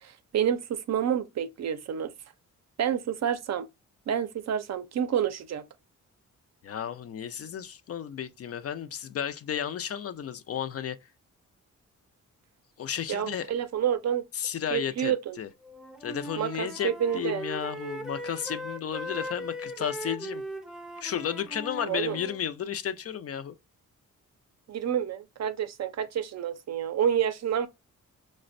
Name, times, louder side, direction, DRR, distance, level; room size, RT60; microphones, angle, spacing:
voice 1, 0.0-2.1 2.8-3.7 4.1-5.7 13.1-14.2 14.7-15.4 16.4-17.4 21.8-22.2 24.7-27.7, right 9 dB, 55° right, 0.5 m, -29 dB
voice 2, 6.6-11.0 12.8-13.5 14.3-15.1 15.4-15.5 16.0-20.4 21.0-23.5, left 9 dB, 50° left, 0.4 m, -33 dB
Wind instrument woodwind instrument, 15.6-22.4, equal, ahead, 0.5 m, -39 dB
4.9 x 2.1 x 2.5 m
cardioid pair, 115°, 32 cm